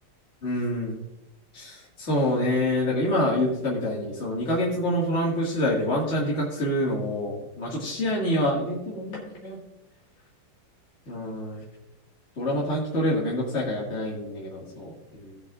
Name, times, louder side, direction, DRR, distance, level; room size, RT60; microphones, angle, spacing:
voice 1, 0.4-1.0 1.5-9.6 11.1-11.6 12.4-15.4, left 1 dB, 35° left, -5 dB, 2.2 m, -27 dB
17.0 x 8.1 x 2.4 m, 0.93 s
omnidirectional pair, 2.3 m